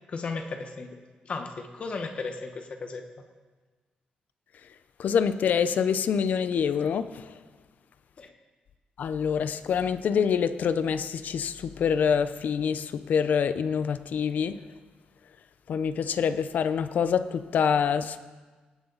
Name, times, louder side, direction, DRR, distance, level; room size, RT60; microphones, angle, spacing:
voice 1, 0.1-1.0 1.2-3.1 8.2-8.3, left 4 dB, 40° left, 1.2 m, -35 dB
voice 2, 5.0-7.3 9.0-14.6 15.7-18.2, left 7 dB, 65° left, 0.7 m, -26 dB
18.5 x 17.0 x 4.0 m
wide cardioid pair, 160°, 3 cm